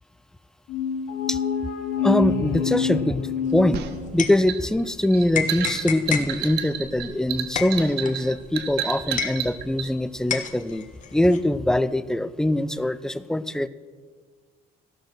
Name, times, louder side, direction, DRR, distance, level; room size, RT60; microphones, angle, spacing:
sound 1, 0.7-4.4, left 7 dB, 70° left, 1.0 m, -27 dB
voice 1, 2.0-3.8 4.1-10.8 11.1-13.7, left 1 dB, 5° left, 14 dB, 0.4 m, -23 dB
sound 2, 3.5-4.9 5.3-9.9 10.3-11.4, left 7 dB, 50° left, 1.2 m, -31 dB
sound 3, 3.7-9.9, right 11 dB, 75° right, 0.9 m, -31 dB
14.5 x 6.1 x 6.5 m, 1.5 s
cardioid pair, 110°, 17 cm